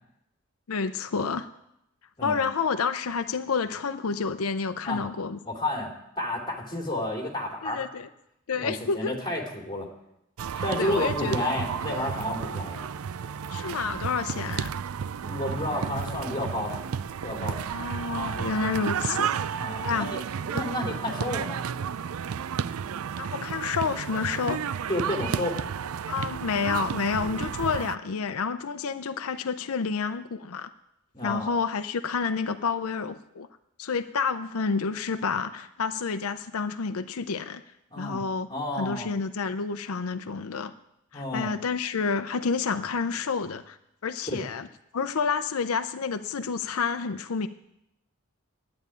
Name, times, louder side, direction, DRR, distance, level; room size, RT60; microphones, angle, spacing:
voice 1, 0.7-1.5 2.2-5.4 7.6-8.1 8.5-9.1 10.5-11.5 13.5-14.7 17.7-19.3 19.8-20.1 20.5-20.7 23.2-24.6 26.1-30.7 31.2-33.5 33.8-37.6 38.0-38.5 38.8-40.7 41.1-43.8 44.0-44.7 44.9-47.5, left 5 dB, 85° left, 9 dB, 0.6 m, -29 dB
voice 2, 5.5-7.8 8.5-9.9 10.6-12.8 15.2-17.8 19.6-21.6 24.9-25.6 31.1-31.5 37.9-38.2 38.5-39.1 41.1-41.5 44.3-44.4, left 1 dB, 20° left, 0 dB, 2.8 m, -31 dB
sound 1, 10.4-28.0, right 7 dB, 80° right, 0.4 m, -32 dB
11.0 x 8.7 x 9.7 m, 0.83 s
head